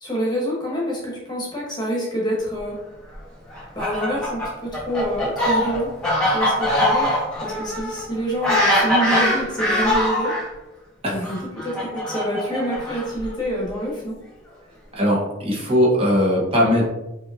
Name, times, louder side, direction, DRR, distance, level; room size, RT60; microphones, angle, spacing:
voice 1, 0.0-2.8 3.7-5.9 6.3-10.3 11.0-14.2, equal, 20° left, -4 dB, 1.0 m, -27 dB
Fowl, 3.5-10.4 11.2-13.3, left 1 dB, 5° left, 1.2 m, -22 dB
voice 2, 14.9-16.8, equal, 30° right, -4 dB, 0.9 m, -19 dB
5.2 x 2.9 x 2.5 m, 0.98 s
head